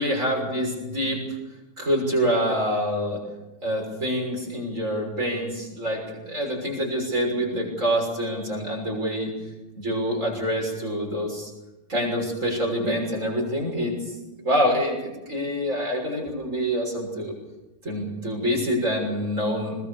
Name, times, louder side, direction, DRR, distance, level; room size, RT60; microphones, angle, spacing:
voice 1, 0.0-1.4 1.8-3.2 3.6-9.3 9.8-11.5 11.9-14.2 14.4-17.3 17.8-19.8, equal, 60° right, -1 dB, 6.7 m, -26 dB
21.0 x 20.5 x 6.9 m, 1.0 s
omnidirectional pair, 1.5 m